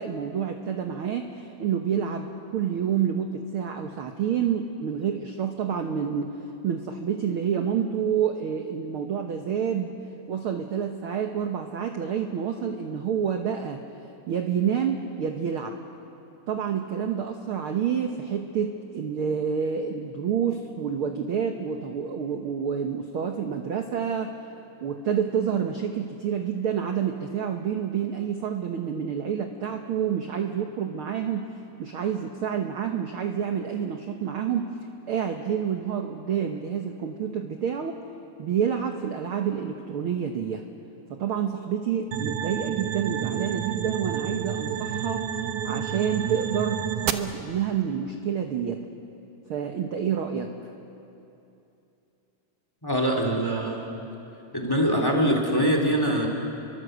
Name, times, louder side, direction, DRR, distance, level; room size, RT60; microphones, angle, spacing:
voice 1, 0.0-6.4 6.6-9.9 10.3-13.8 14.3-15.8 16.5-24.3 24.8-31.5 31.8-34.7 35.1-38.0 38.4-40.6 41.1-45.3 45.6-48.8 49.5-50.7, right 8 dB, 55° right, 4 dB, 1.6 m, -28 dB
sound 1, 42.1-47.1, right 9 dB, 80° right, 2.5 m, -29 dB
voice 2, 52.8-53.9 54.5-56.3, equal, 5° left, 2 dB, 3.0 m, -23 dB
30.0 x 23.5 x 8.0 m, 2.8 s
omnidirectional pair, 3.6 m